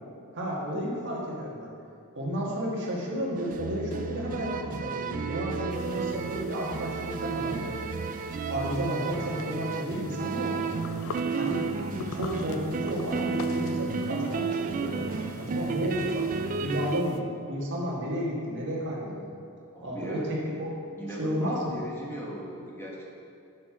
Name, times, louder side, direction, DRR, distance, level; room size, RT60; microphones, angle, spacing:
voice 1, 0.3-1.7 2.1-7.9 8.5-10.6 11.4-11.6 12.1-16.3 16.6-19.3 19.8-20.7 21.2-21.7, equal, 55° right, -4 dB, 1.5 m, -32 dB
sound 1, 3.4-17.0, right 4 dB, 35° right, 0.3 m, -32 dB
sound 2, 5.7-17.2, left 4 dB, 65° left, 0.4 m, -45 dB
voice 2, 19.7-20.6 21.0-23.1, right 1 dB, 10° left, -4 dB, 1.2 m, -39 dB
6.4 x 6.0 x 4.8 m, 2.4 s
head